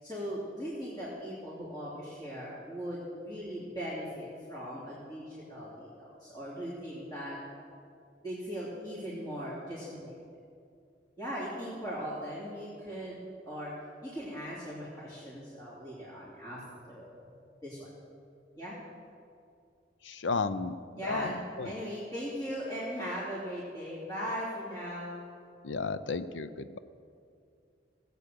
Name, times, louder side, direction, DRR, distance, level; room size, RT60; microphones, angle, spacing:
voice 1, 0.0-7.4 8.2-10.1 11.2-13.2 13.5-13.7 14.0-16.6 16.9-17.1 17.6-17.9 18.6-18.8 21.0-25.3, equal, 20° left, -9 dB, 2.9 m, -39 dB
voice 2, 20.0-20.8 21.0-21.7 25.6-26.8, left 4 dB, 85° left, 13 dB, 0.6 m, -33 dB
17.5 x 8.4 x 6.8 m, 2.4 s
head